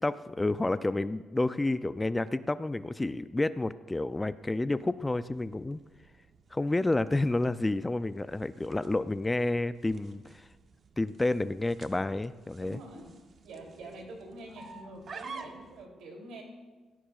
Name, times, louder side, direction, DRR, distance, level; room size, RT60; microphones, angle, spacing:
voice 1, 0.0-5.8 6.5-10.5 11.0-12.8, left 2 dB, 15° left, 14 dB, 0.4 m, -30 dB
sound 1, 4.4-15.9, right 4 dB, 50° right, 0.9 m, -51 dB
voice 2, 12.6-13.2 13.4-16.4, right 2 dB, 80° right, 1 dB, 3.0 m, -46 dB
17.0 x 14.0 x 2.4 m, 1.3 s
cardioid pair, 90°, 0 cm